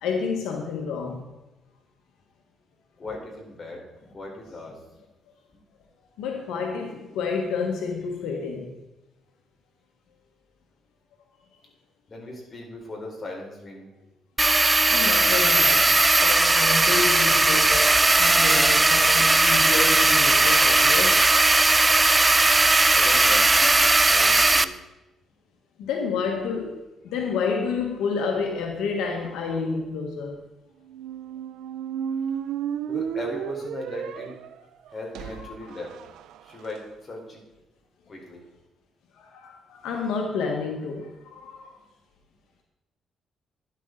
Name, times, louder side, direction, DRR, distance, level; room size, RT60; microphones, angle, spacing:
voice 1, 0.0-1.3 6.2-8.7 14.9-21.5 25.8-30.4 35.4-35.5 39.1-41.8, left 5 dB, 90° left, 2 dB, 1.4 m, -30 dB
voice 2, 3.0-5.0 12.1-13.9 22.9-24.7 32.9-34.4 34.9-35.9 36.4-37.4 38.1-38.4, left 2 dB, 35° left, -1 dB, 4.2 m, -38 dB
sound 1, 14.4-24.6, right 2 dB, 20° right, 0.5 m, -18 dB
sound 2, 30.9-36.8, right 9 dB, 85° right, 0.5 m, -33 dB
12.0 x 11.0 x 3.9 m, 1.0 s
cardioid pair, 90°, 0 cm